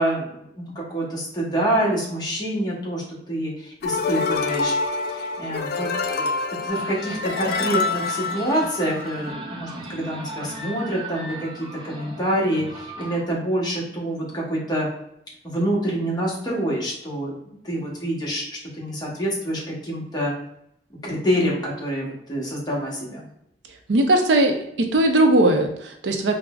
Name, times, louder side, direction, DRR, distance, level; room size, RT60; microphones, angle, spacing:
voice 1, 0.0-4.7 5.1-6.3 6.6-14.9 15.4-17.3 17.6-20.3 21.0-23.3, right 1 dB, 25° left, -4 dB, 1.0 m, -26 dB
sound 1, 3.8-9.3, left 4 dB, 60° left, 0.3 m, -26 dB
sound 2, 6.7-13.2, right 1 dB, 30° right, 0.5 m, -37 dB
voice 2, 23.9-26.4, right 1 dB, 85° right, 4 dB, 0.5 m, -19 dB
4.6 x 2.0 x 2.3 m, 0.75 s
head